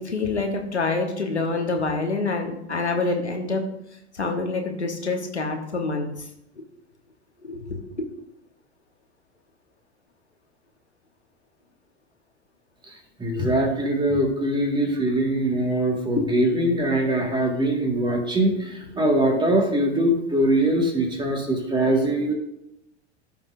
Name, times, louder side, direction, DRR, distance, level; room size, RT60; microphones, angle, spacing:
voice 1, 0.0-3.6 4.1-6.3 6.6-6.7 7.4-8.0 16.2-16.3, left 3 dB, 90° left, 3 dB, 1.2 m, -26 dB
voice 2, 12.9-22.3, right 1 dB, 15° right, 2 dB, 1.9 m, -22 dB
14.0 x 5.5 x 2.6 m, 0.82 s
figure-of-eight pair, 90°, 33 cm